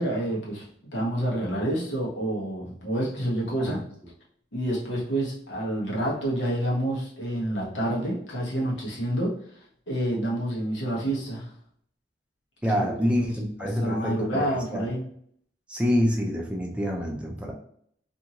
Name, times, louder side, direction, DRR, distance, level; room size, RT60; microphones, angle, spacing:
voice 1, 0.0-3.8 4.5-11.5 12.7-13.3 13.6-15.0, right 1 dB, 85° left, -3 dB, 1.1 m, -28 dB
voice 2, 12.6-14.4 14.7-14.9 15.7-17.5, equal, 5° right, 0 dB, 0.4 m, -26 dB
2.7 x 2.6 x 2.8 m, 0.65 s
head